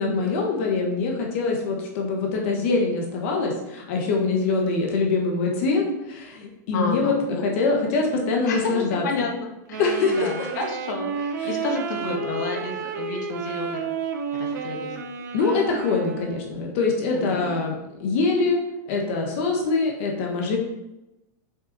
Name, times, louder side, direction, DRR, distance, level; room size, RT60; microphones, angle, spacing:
voice 1, 0.0-7.2 7.4-9.0 9.8-10.5 15.3-18.6 18.9-20.6, left 3 dB, 45° left, 0 dB, 1.5 m, -24 dB
voice 2, 6.7-7.4 8.4-9.8 10.1-13.9 14.3-15.0 17.1-17.5, left 3 dB, 70° left, 1 dB, 1.8 m, -30 dB
Wind instrument woodwind instrument, 9.7-16.6, right 6 dB, 70° right, 0.9 m, -31 dB
6.8 x 5.6 x 4.3 m, 0.93 s
supercardioid pair, 180°, 10 cm